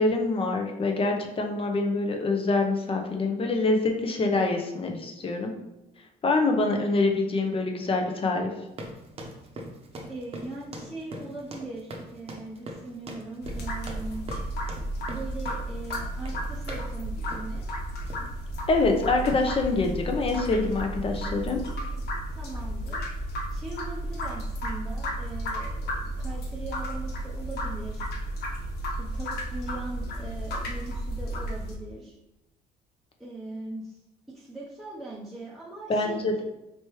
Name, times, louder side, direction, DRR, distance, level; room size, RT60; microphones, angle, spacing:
voice 1, 0.0-5.5 6.2-8.5 18.7-21.6 35.9-36.4, left 3 dB, 35° left, 3 dB, 0.7 m, -25 dB
sound 1, 8.7-16.9 17.3-17.6 18.0-18.3, right 1 dB, 35° right, 0.8 m, -41 dB
voice 2, 10.1-14.2 15.1-17.7 21.9-22.0 22.3-23.1 23.5-28.1 29.0-32.1 33.2-34.0 34.3-36.4, right 3 dB, ahead, -7 dB, 0.7 m, -40 dB
sound 2, 13.4-31.7, equal, 70° left, 0.9 m, -33 dB
4.4 x 3.2 x 3.1 m, 0.94 s
cardioid pair, 110°, 17 cm